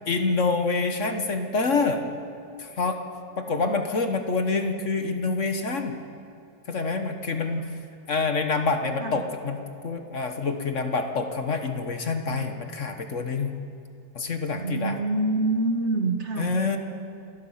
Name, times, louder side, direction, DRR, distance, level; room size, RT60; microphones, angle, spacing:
voice 1, 0.1-2.0 2.6-3.0 3.4-6.0 6.7-7.7 8.1-9.6 9.8-13.5 14.1-14.9 16.4-16.8, left 4 dB, 50° left, 6 dB, 1.5 m, -26 dB
voice 2, 14.6-16.5, right 2 dB, 45° right, 6 dB, 1.5 m, -27 dB
27.5 x 20.0 x 5.7 m, 2.5 s
omnidirectional pair, 1.7 m